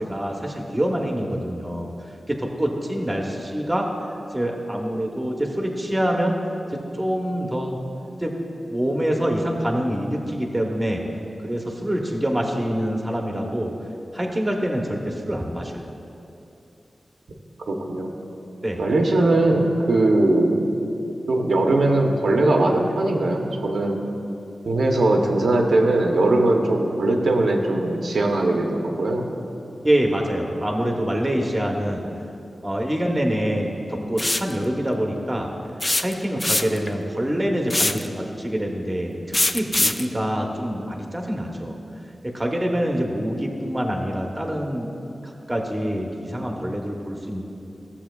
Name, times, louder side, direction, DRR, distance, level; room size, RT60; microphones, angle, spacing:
voice 1, 0.0-1.9 2.3-3.9 4.3-6.4 6.7-7.8 8.2-8.4 8.7-11.0 11.4-13.7 14.1-15.8 18.6-18.8 29.8-32.0 32.6-35.5 36.0-41.7 42.2-44.9 45.2-47.4, equal, 15° right, 1 dB, 0.9 m, -25 dB
voice 2, 17.7-18.1 18.8-20.8 21.3-24.0 24.6-29.3, right 2 dB, 85° right, 1 dB, 0.7 m, -20 dB
sound 1, 34.2-34.5 35.8-36.9 37.7-38.1 39.3-40.1, left 1 dB, 25° left, 0.3 m, -22 dB
14.0 x 7.2 x 2.3 m, 2.8 s
wide cardioid pair, 105°, 0 cm